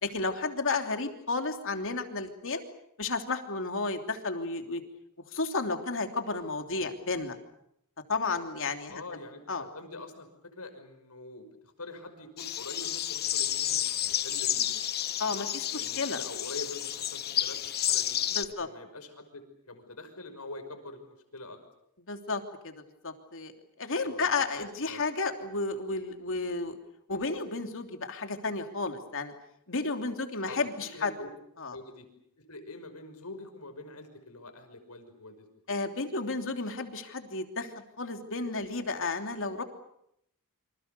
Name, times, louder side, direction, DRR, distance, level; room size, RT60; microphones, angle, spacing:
voice 1, 0.0-2.6 3.0-4.8 5.3-7.4 8.1-9.0 9.5-9.6 15.2-16.2 18.3-18.7 22.1-23.5 23.8-26.8 27.1-29.3 29.7-31.1 31.6-31.8 35.7-39.6, left 3 dB, 60° left, 5 dB, 3.1 m, -32 dB
voice 2, 8.9-14.9 15.5-17.6 17.9-18.2 18.6-21.6 24.0-25.0 30.4-30.7 30.9-31.3 31.7-32.1 32.4-35.8, left 2 dB, 85° left, 7 dB, 5.7 m, -45 dB
sound 1, 12.4-18.4, left 11 dB, 45° left, 1.1 m, -31 dB
28.0 x 26.0 x 6.9 m, 0.75 s
head